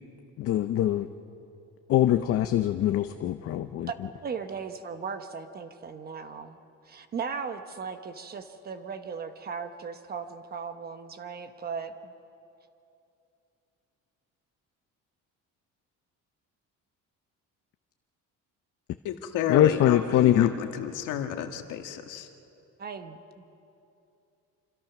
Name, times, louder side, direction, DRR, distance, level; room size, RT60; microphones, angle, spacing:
voice 1, 0.4-1.1 1.9-3.9 19.5-20.5, left 12 dB, 45° left, 9 dB, 0.6 m, -23 dB
voice 2, 4.2-6.6 6.8-12.1 22.8-23.5, right 6 dB, 30° right, 8 dB, 1.0 m, -37 dB
voice 3, 19.1-22.3, left 9 dB, 70° left, 5 dB, 1.7 m, -32 dB
26.5 x 25.5 x 5.9 m, 2.8 s
cardioid pair, 170°, 32 cm